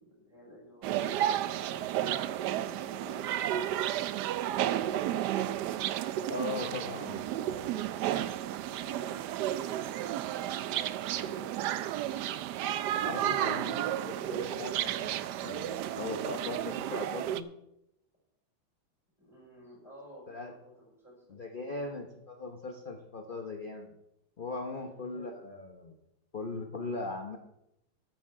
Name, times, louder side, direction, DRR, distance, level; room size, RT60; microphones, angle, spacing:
voice 1, 0.0-1.9 2.7-5.3 6.2-7.7 8.5-9.3 10.9-12.0 13.3-15.3 19.2-21.9 24.8-25.5, equal, 5° right, -6 dB, 5.5 m, -54 dB
sound 1, 0.8-17.4, right 11 dB, 80° right, 0.9 m, -32 dB
voice 2, 6.3-7.3 13.0-15.1 15.4-17.5 20.3-20.5 21.3-23.9 24.4-26.0 26.3-27.4, left 3 dB, 55° left, 4 dB, 0.6 m, -39 dB
13.5 x 11.5 x 3.7 m, 0.85 s
omnidirectional pair, 2.4 m